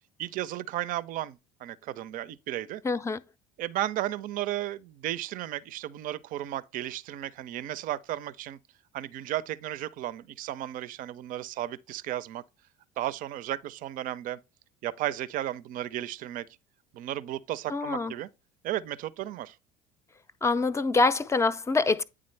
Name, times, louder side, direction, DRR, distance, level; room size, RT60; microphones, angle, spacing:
voice 1, 0.2-2.8 3.6-8.6 8.9-12.4 13.0-14.4 14.8-16.5 16.9-18.3 18.6-19.6, right 13 dB, 55° right, 0.5 m, -34 dB
voice 2, 2.8-3.2 17.7-18.1 20.4-22.0, left 3 dB, 15° left, 0.4 m, -25 dB
8.7 x 3.7 x 3.2 m
hypercardioid pair, 75°, 17 cm